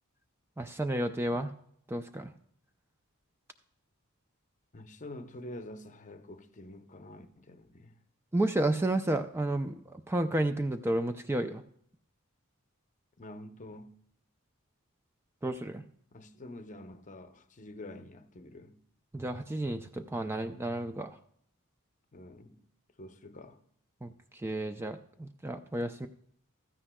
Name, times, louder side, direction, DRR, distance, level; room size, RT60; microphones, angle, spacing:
voice 1, 0.6-1.5 1.9-2.3 8.3-11.6 15.4-15.8 19.1-21.2 24.0-26.1, right 1 dB, 10° right, 0.4 m, -32 dB
voice 2, 4.7-8.0 13.2-13.9 16.1-18.8 22.1-22.6 23.0-23.6, left 1 dB, 35° left, 0.7 m, -47 dB
16.0 x 13.5 x 2.2 m
head